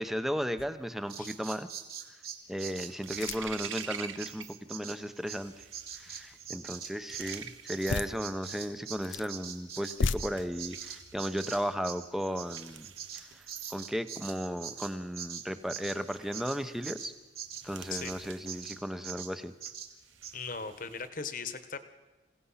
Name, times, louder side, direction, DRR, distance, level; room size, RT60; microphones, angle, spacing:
voice 1, 0.0-1.7 2.1-2.2 2.5-5.7 5.9-12.9 13.1-17.1 17.6-19.5, equal, ahead, 10 dB, 0.8 m, -35 dB
sound 1, 0.6-1.0 1.5-1.6 3.1-3.7 7.8-8.2 8.8-9.3 9.8-10.2, left 4 dB, 85° left, 0.6 m, -34 dB
Bird vocalization bird call bird song, 1.1-9.0 9.3-18.2 18.5-18.8 19.0-19.3 19.6-19.9 20.2-20.3, right 8 dB, 50° right, 2.4 m, -43 dB
sound 2, 2.4-4.6 4.9-21.1, right 8 dB, 90° right, 1.1 m, -49 dB
voice 2, 20.3-21.8, left 5 dB, 45° left, 10 dB, 1.3 m, -38 dB
27.0 x 17.5 x 5.7 m, 1.2 s
head